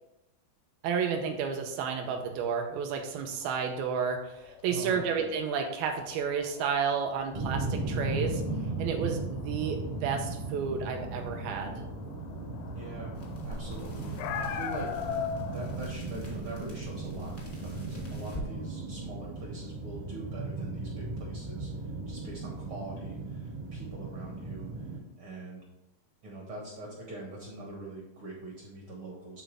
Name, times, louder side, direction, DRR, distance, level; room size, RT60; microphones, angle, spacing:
voice 1, 0.8-8.4 8.8-11.8, right 6 dB, 80° right, 3 dB, 2.4 m, -31 dB
sound 1, 3.3-15.8, left 7 dB, 80° left, 1.9 m, -42 dB
voice 2, 4.7-5.0 12.7-13.1 13.4-15.2 15.5-24.9 25.2-25.6 26.2-29.4, right 2 dB, 60° right, -2 dB, 1.4 m, -43 dB
sound 2, 7.3-25.0, right 2 dB, 35° right, 0.6 m, -37 dB
sound 3, 13.1-18.5, left 1 dB, 45° left, 0.7 m, -46 dB
11.0 x 3.8 x 3.3 m, 0.89 s
omnidirectional pair, 4.3 m